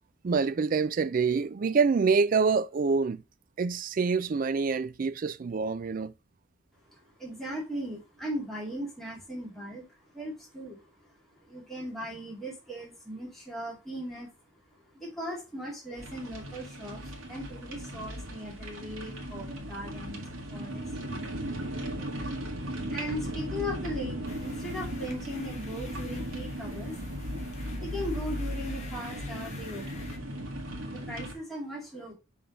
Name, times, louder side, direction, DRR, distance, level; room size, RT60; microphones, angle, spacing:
voice 1, 0.2-3.2 3.6-6.1, right 5 dB, 40° right, 0.3 m, -26 dB
voice 2, 6.8-21.4 22.7-27.4 27.8-30.1 30.9-32.1, equal, ahead, 2.1 m, -39 dB
sound 1, 16.0-31.3, equal, 90° right, 1.7 m, -37 dB
sound 2, 24.2-30.2, left 3 dB, 35° left, 1.2 m, -48 dB
6.0 x 3.5 x 5.1 m
head